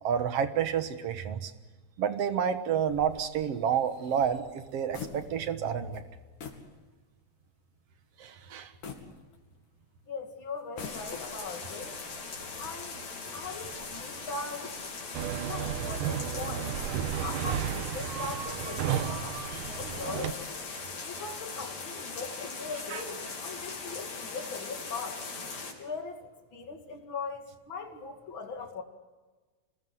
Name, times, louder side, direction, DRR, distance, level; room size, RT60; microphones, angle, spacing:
voice 1, 0.0-1.5 2.0-6.0 8.2-8.7 22.9-23.0, right 8 dB, 60° right, 9 dB, 2.1 m, -29 dB
sound 1, 2.8-5.7 5.9-6.1 6.4-6.7 7.2-7.3 8.8-9.8 10.6-11.5, left 6 dB, 85° left, 4.3 m, -45 dB
voice 2, 10.1-11.9 12.6-13.0 13.3-14.7 15.4-16.8 17.2-20.4 21.0-25.2 25.8-28.8, left 4 dB, 40° left, 3 dB, 3.2 m, -40 dB
sound 2, 10.8-25.7, left 4 dB, 60° left, 5.1 m, -40 dB
sound 3, 15.1-20.3, right 9 dB, 85° right, 2.5 m, -33 dB
26.0 x 20.0 x 7.9 m, 1.3 s
omnidirectional pair, 3.6 m